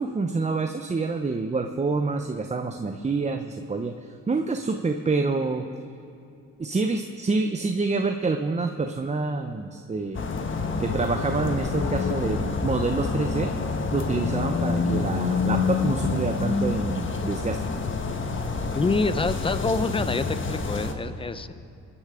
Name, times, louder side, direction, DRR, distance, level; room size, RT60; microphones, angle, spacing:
voice 1, 0.0-3.9 4.3-5.7 6.6-10.2 10.8-13.5 13.9-17.6, right 3 dB, 25° right, 5 dB, 0.8 m, -27 dB
sound 1, 10.1-20.9, left 4 dB, 40° left, 1.4 m, -27 dB
voice 2, 18.7-21.5, left 3 dB, 15° left, 12 dB, 0.7 m, -26 dB
25.5 x 10.0 x 5.0 m, 2.6 s
cardioid pair, 90°, 30 cm